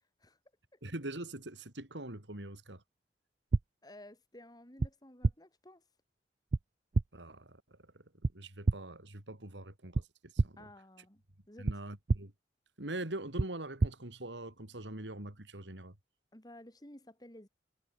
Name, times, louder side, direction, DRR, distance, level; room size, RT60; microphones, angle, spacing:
voice 1, 0.8-2.8 7.1-8.0 8.3-10.7 11.6-12.3 12.8-15.9, right 1 dB, 85° right, 3.6 m, -43 dB
sound 1, 3.5-3.6 4.8-4.9 5.2-5.3 6.5-6.6 6.9-7.1 8.2-8.3 8.6-8.7 9.9-10.0 10.4-10.5 11.6-11.7 12.1-12.2 13.4-13.5 13.8-13.9, right 3 dB, 40° right, 0.4 m, -27 dB
voice 2, 3.8-5.8 10.6-11.7 16.3-17.5, left 1 dB, 20° left, 3.8 m, -54 dB
head